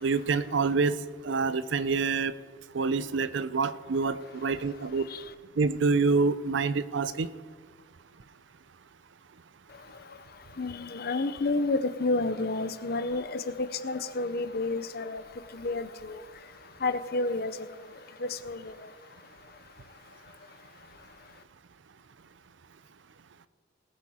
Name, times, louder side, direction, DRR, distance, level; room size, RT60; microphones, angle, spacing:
voice 1, 0.0-1.0 1.2-2.3 2.7-5.1 5.6-7.3, right 4 dB, 70° right, 14 dB, 0.5 m, -27 dB
voice 2, 10.6-13.4 13.8-15.2 15.5-16.2 16.8-17.5 18.2-18.6, left 3 dB, 50° left, 11 dB, 0.7 m, -30 dB
19.0 x 9.3 x 4.3 m, 1.6 s
head